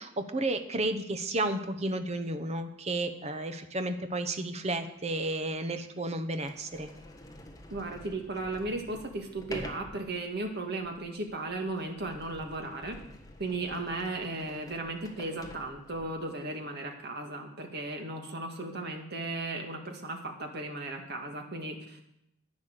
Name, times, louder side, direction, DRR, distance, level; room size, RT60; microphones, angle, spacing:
voice 1, 0.0-6.9, right 2 dB, 35° right, 8 dB, 0.9 m, -32 dB
Sliding door, 5.0-5.1 5.8-5.9 6.4-16.3, left 1 dB, 20° left, 1.3 m, -48 dB
voice 2, 7.7-13.0 13.4-22.0, right 2 dB, 55° right, 3 dB, 2.0 m, -36 dB
11.0 x 9.5 x 6.7 m, 0.80 s
head